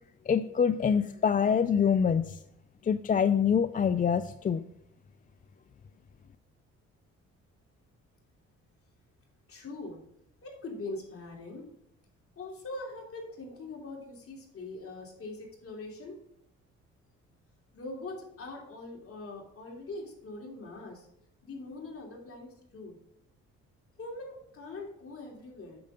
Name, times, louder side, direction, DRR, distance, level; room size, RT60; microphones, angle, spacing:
voice 1, 0.3-2.4 2.8-4.6, left 7 dB, 30° left, 12 dB, 0.4 m, -25 dB
voice 2, 9.5-10.0 10.4-11.7 12.4-16.2 17.7-21.1 21.4-22.9 24.0-25.8, left 2 dB, 50° left, -1 dB, 3.1 m, -42 dB
8.7 x 6.6 x 3.6 m, 0.79 s
cardioid pair, 90°, 30 cm